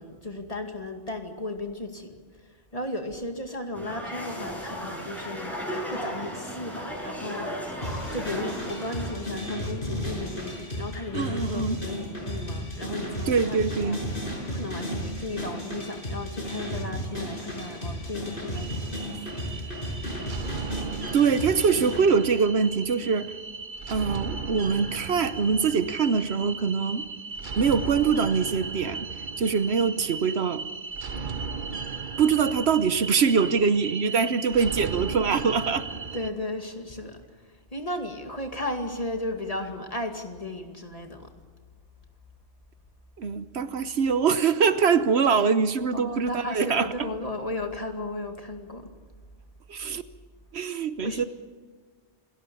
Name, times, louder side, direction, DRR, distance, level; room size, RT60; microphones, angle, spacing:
voice 1, 0.0-7.8 8.1-19.2 36.1-37.2 37.4-41.3 45.9-48.9 51.0-51.3, left 1 dB, 35° left, 4 dB, 2.3 m, -35 dB
sound 1, 3.7-9.1, equal, ahead, 7.1 m, -35 dB
sound 2, 7.8-22.0, equal, 50° left, 5.9 m, -34 dB
voice 2, 11.1-11.8 13.3-14.0 21.1-23.3 23.9-27.1 27.6-29.1 29.4-30.7 32.2-35.9 43.2-47.1 49.7-50.0 50.5-51.3, right 5 dB, 70° right, 12 dB, 1.2 m, -23 dB
sound 3, 18.5-36.3, right 4 dB, 45° right, 1.1 m, -36 dB
27.5 x 18.5 x 7.0 m, 1.5 s
omnidirectional pair, 1.2 m